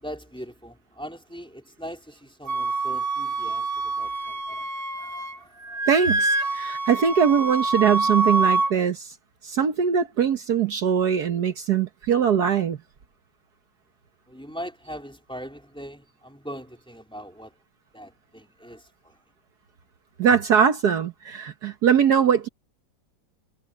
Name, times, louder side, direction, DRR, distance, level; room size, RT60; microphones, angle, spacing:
voice 1, 0.0-4.7 5.0-5.9 14.3-17.6 17.9-19.1, equal, 5° left, 4.1 m, -41 dB
Wind instrument woodwind instrument, 2.5-5.4 5.6-8.7, right 3 dB, 35° right, 1.2 m, -26 dB
voice 2, 5.9-9.1 9.4-12.8 20.2-22.5, right 7 dB, 65° right, 1.7 m, -21 dB
omnidirectional pair, 1.9 m